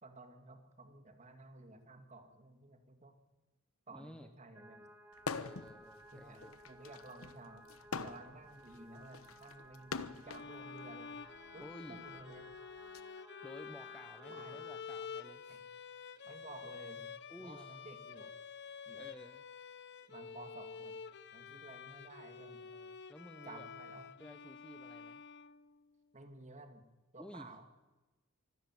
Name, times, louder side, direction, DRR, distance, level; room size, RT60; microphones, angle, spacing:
voice 1, 0.0-3.2 3.9-4.9 6.1-6.4 6.6-7.7 8.0-11.1 11.5-12.5 14.3-14.6 15.5-15.6 16.2-17.1 17.4-18.3 18.9-19.1 20.1-20.9 21.3-22.7 23.4-24.2 26.1-26.9 27.1-27.7, right 2 dB, 35° right, 7 dB, 2.4 m, -54 dB
voice 2, 3.9-4.3 5.3-6.5 11.6-12.0 13.4-15.4 17.3-17.7 18.9-19.4 22.6-23.7 24.2-25.2 27.2-27.5, equal, 5° left, 8 dB, 1.0 m, -53 dB
sound 1, 4.5-14.8, right 1 dB, 10° right, 1.3 m, -58 dB
sound 2, 5.2-5.7 6.1-10.5 11.4-13.0, left 4 dB, 85° left, 1.1 m, -43 dB
sound 3, 10.2-25.9, left 6 dB, 55° left, 1.0 m, -49 dB
24.5 x 13.5 x 9.2 m, 1.1 s
head